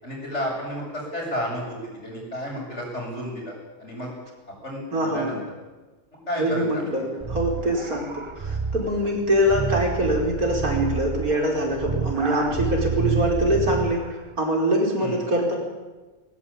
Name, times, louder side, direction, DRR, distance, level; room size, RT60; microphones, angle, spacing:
voice 1, 0.0-4.1 4.6-5.4 6.3-7.2 15.0-15.2, equal, 50° left, -1 dB, 8.1 m, -32 dB
voice 2, 4.9-5.3 6.4-14.0 14.4-15.5, equal, 80° right, 0 dB, 5.5 m, -23 dB
sound 1, 7.2-14.1, right 4 dB, 25° right, 0.9 m, -29 dB
21.0 x 19.5 x 8.7 m, 1.2 s
omnidirectional pair, 1.5 m